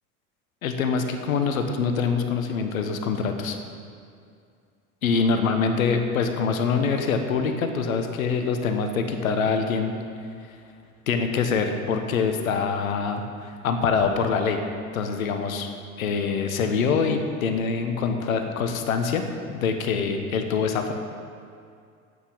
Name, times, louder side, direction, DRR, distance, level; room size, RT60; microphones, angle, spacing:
voice 1, 0.6-3.6 5.0-9.9 11.1-14.6 14.9-15.7 16.0-19.2 19.5-20.9, left 5 dB, 70° left, 6 dB, 1.3 m, -24 dB
11.5 x 8.3 x 7.2 m, 2.3 s
figure-of-eight pair, 75°, 43 cm